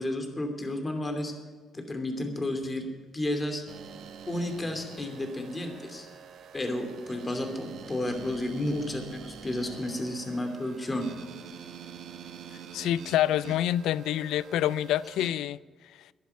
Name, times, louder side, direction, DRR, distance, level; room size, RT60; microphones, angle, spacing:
voice 1, 0.0-1.3 1.7-2.9 3.1-3.6 4.3-6.1 6.5-11.1, left 1 dB, 25° left, 2.7 m, -32 dB
sound 1, 3.7-15.3, right 6 dB, 70° right, 1.4 m, -46 dB
voice 2, 12.7-15.6, left 12 dB, 85° left, 0.3 m, -27 dB
11.5 x 10.5 x 8.2 m
cardioid pair, 90°, 0 cm